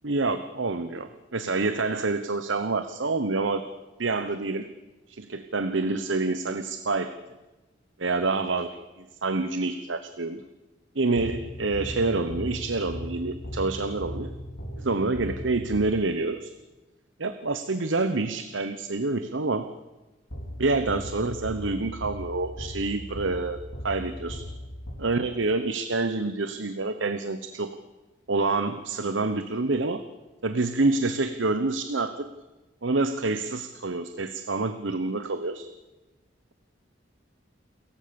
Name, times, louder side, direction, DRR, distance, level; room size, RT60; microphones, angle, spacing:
voice 1, 0.0-3.7 4.0-4.7 5.1-7.1 8.0-10.4 10.9-14.3 14.8-16.5 17.2-19.7 20.6-24.4 25.0-27.7 28.3-30.0 30.4-32.3 32.8-35.7, right 3 dB, 80° right, 10 dB, 1.1 m, -27 dB
sound 1, 11.2-16.3 20.3-25.5, equal, 75° left, 5.3 m, -38 dB
29.0 x 14.5 x 7.0 m, 1.1 s
head